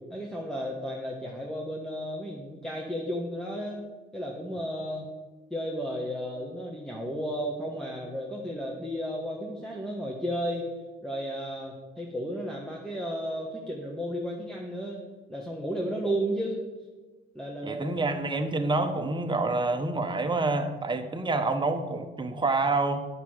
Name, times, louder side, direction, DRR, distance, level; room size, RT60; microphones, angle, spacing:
voice 1, 0.1-3.8 4.1-5.1 5.5-10.7 11.0-15.0 15.3-16.6 17.3-17.9, equal, ahead, -3 dB, 1.5 m, -33 dB
voice 2, 17.6-23.1, right 3 dB, 25° right, 6 dB, 1.2 m, -27 dB
9.5 x 6.1 x 7.9 m, 1.3 s
cardioid pair, 90°, 20 cm